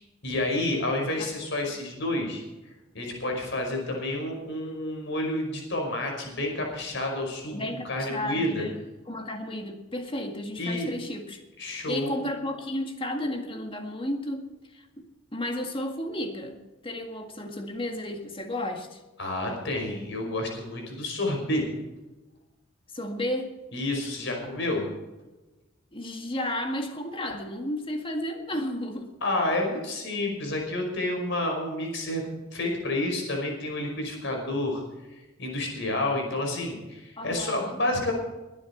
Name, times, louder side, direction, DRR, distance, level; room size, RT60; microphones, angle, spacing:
voice 1, 0.2-2.4 2.9-8.7 10.6-10.9 11.6-12.2 19.2-21.6 23.7-24.9 29.2-32.2 32.5-34.8 35.4-38.1, left 1 dB, 65° left, 1 dB, 5.3 m, -29 dB
voice 2, 7.5-8.7 9.1-11.4 11.9-14.4 14.7-14.9 15.3-16.6 16.8-19.0 22.9-23.5 25.9-29.1 37.2-37.8, left 1 dB, 25° left, 4 dB, 1.9 m, -33 dB
21.0 x 9.9 x 4.5 m, 1.1 s
head